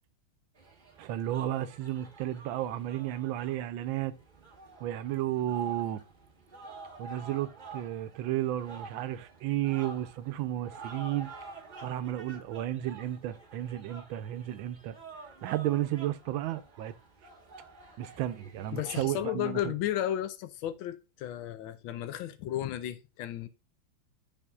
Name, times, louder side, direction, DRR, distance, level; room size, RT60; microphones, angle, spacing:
sound 1, 0.5-19.3, right 3 dB, 25° right, 1.1 m, -49 dB
voice 1, 1.0-4.2 4.8-6.0 7.0-11.3 11.8-14.9 15.4-16.9 18.0-19.6, right 13 dB, 80° right, 1.3 m, -33 dB
voice 2, 18.7-23.5, left 12 dB, 80° left, 1.4 m, -33 dB
12.5 x 4.3 x 2.3 m
omnidirectional pair, 2.2 m